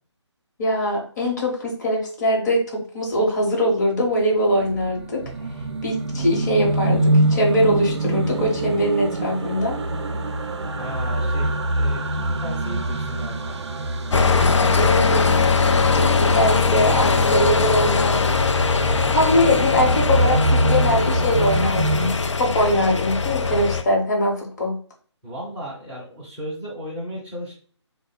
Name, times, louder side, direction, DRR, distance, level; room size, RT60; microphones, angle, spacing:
voice 1, 0.6-5.2 5.8-9.8 14.7-15.3 15.9-18.3 19.1-24.8, equal, 35° left, -1 dB, 0.9 m, -22 dB
sound 1, 4.1-22.1, right 1 dB, 65° right, 0.4 m, -25 dB
voice 2, 10.7-13.6 25.2-27.5, equal, 10° right, -7 dB, 0.6 m, -35 dB
sound 2, 14.1-23.8, left 5 dB, 75° left, 0.4 m, -20 dB
3.1 x 2.1 x 4.0 m, 0.44 s
figure-of-eight pair, 150°, 15 cm